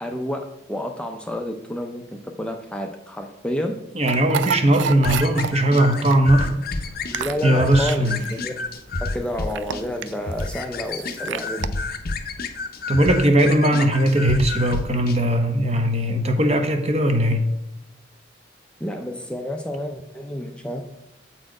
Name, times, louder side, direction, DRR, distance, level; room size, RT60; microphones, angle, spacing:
voice 1, 0.0-3.8 7.1-8.5 9.0-11.7 18.8-20.9, left 1 dB, 5° left, 3 dB, 0.5 m, -30 dB
voice 2, 3.9-6.6 7.4-8.2 12.9-17.4, right 1 dB, 35° right, 5 dB, 0.9 m, -19 dB
sound 1, 4.1-11.7, right 7 dB, 70° right, 0.4 m, -32 dB
sound 2, 5.0-15.2, left 3 dB, 55° left, 0.6 m, -30 dB
7.5 x 4.3 x 4.8 m, 0.89 s
head